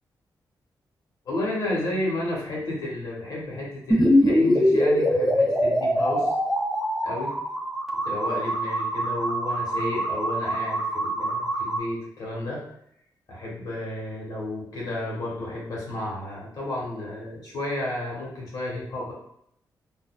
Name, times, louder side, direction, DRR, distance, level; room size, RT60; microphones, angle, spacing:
voice 1, 1.2-6.3 7.0-7.3 8.0-12.7 13.3-19.1, left 1 dB, 60° left, -4 dB, 1.2 m, -32 dB
sound 1, 3.9-11.8, equal, 5° right, 0.4 m, -23 dB
4.0 x 2.6 x 2.3 m, 0.73 s
wide cardioid pair, 160°, 8 cm